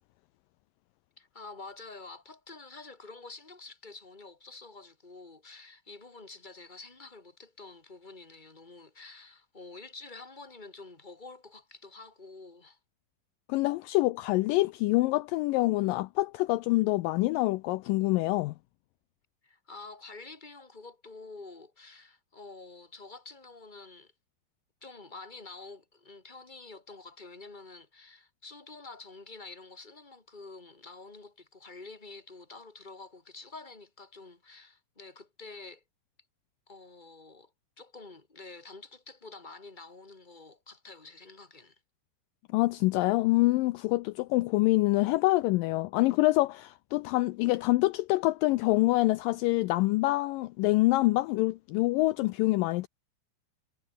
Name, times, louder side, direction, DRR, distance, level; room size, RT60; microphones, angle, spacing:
voice 1, 1.2-12.8 19.4-24.1 24.8-35.8 36.7-37.5 37.8-41.8, left 3 dB, 10° left, 3.1 m, -48 dB
voice 2, 13.5-18.5 42.5-52.9, left 19 dB, 85° left, 1.9 m, -26 dB
omnidirectional pair, 4.6 m